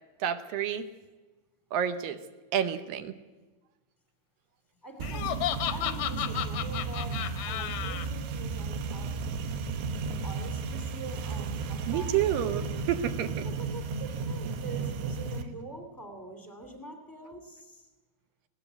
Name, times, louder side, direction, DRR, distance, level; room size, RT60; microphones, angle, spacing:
voice 1, 0.2-0.9 1.7-2.2 2.5-3.1 11.9-13.5, right 10 dB, 75° right, 11 dB, 2.2 m, -29 dB
voice 2, 4.8-5.4 5.7-9.2 10.2-12.3 13.4-17.9, right 2 dB, 10° left, 5 dB, 1.1 m, -44 dB
Laughter, 5.0-8.1, left 12 dB, 75° left, 2.1 m, -33 dB
sound 1, 5.0-15.4, right 4 dB, 90° right, 3.5 m, -34 dB
21.0 x 17.5 x 8.1 m, 1.2 s
omnidirectional pair, 4.8 m